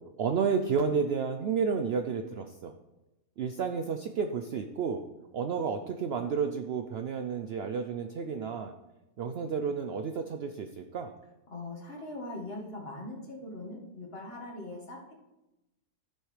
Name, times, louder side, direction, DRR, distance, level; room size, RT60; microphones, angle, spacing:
voice 1, 0.2-2.7 3.4-5.0 5.3-8.7 9.2-11.1, right 6 dB, 85° right, 6 dB, 0.5 m, -31 dB
voice 2, 11.5-15.1, left 2 dB, 40° left, -2 dB, 1.8 m, -41 dB
14.5 x 6.4 x 3.2 m, 0.99 s
omnidirectional pair, 1.7 m